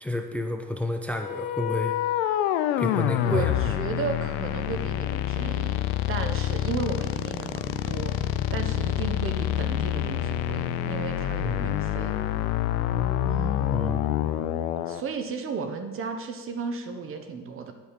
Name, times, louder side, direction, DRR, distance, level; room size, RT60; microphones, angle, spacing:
voice 1, 0.0-1.9 2.8-3.5 11.4-11.7 13.7-14.1, left 2 dB, 5° left, 5 dB, 0.5 m, -30 dB
sound 1, 1.1-15.0, left 12 dB, 85° left, 0.5 m, -27 dB
voice 2, 3.2-5.8 6.1-8.1 8.5-12.1 13.2-14.2 14.9-17.7, right 5 dB, 45° right, 6 dB, 1.2 m, -34 dB
sound 2, 7.1-14.4, right 1 dB, 80° right, 1.7 m, -43 dB
10.5 x 4.6 x 5.1 m, 1.3 s
supercardioid pair, 85°, 29 cm